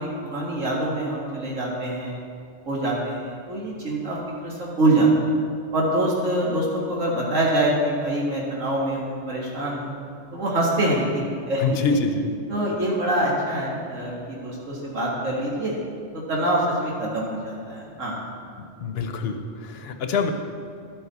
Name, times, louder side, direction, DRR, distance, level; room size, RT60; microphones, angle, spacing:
voice 1, 0.0-2.2 2.7-5.1 5.7-9.9 10.3-11.7 12.5-15.7 16.1-18.2, right 1 dB, 85° right, -4 dB, 2.1 m, -25 dB
voice 2, 11.6-12.3 18.8-20.3, left 4 dB, 55° left, 6 dB, 1.0 m, -25 dB
11.5 x 9.7 x 4.2 m, 2.2 s
omnidirectional pair, 1.3 m